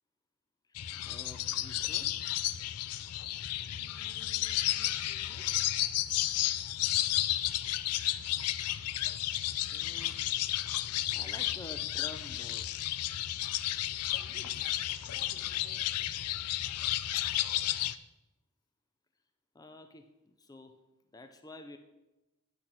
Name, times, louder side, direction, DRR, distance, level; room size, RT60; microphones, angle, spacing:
sound 1, 0.7-17.9, left 13 dB, 90° left, 0.4 m, -32 dB
voice 1, 1.1-2.1 9.7-10.2 11.1-12.7 19.5-20.8 21.1-21.8, left 2 dB, 15° left, 0.5 m, -49 dB
voice 2, 3.6-5.7 14.0-16.0, left 2 dB, 35° left, 1.6 m, -58 dB
9.6 x 6.3 x 5.8 m
head